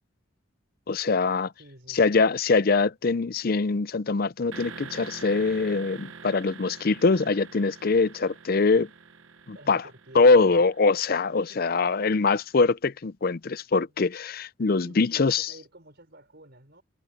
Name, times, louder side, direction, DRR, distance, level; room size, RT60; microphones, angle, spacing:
voice 1, 0.9-1.5 1.9-8.9 9.5-9.9 10.1-15.5, left 4 dB, 45° left, 0.5 m, -23 dB
voice 2, 1.6-2.2 9.5-10.6 11.5-12.1 14.8-16.8, right 1 dB, 55° right, 5.9 m, -50 dB
sound 1, 4.5-12.3, right 5 dB, 80° right, 1.1 m, -45 dB
head